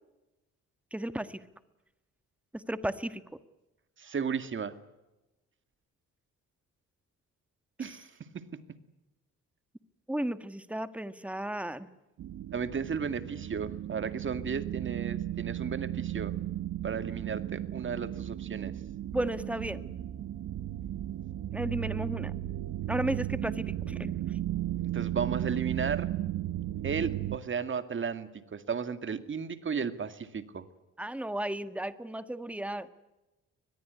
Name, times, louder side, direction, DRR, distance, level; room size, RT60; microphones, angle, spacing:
voice 1, 0.9-1.4 2.5-3.2 10.1-11.9 19.1-19.8 21.5-22.3 22.9-24.1 31.0-32.9, right 1 dB, 5° right, 12 dB, 1.6 m, -34 dB
voice 2, 4.0-4.8 7.8-8.6 12.5-16.4 16.8-18.7 24.9-26.1 26.8-30.6, right 6 dB, 40° right, 11 dB, 2.1 m, -34 dB
sound 1, 12.2-27.4, right 13 dB, 65° right, 0.9 m, -35 dB
23.5 x 21.0 x 9.7 m, 1.0 s
cardioid pair, 90°, 30 cm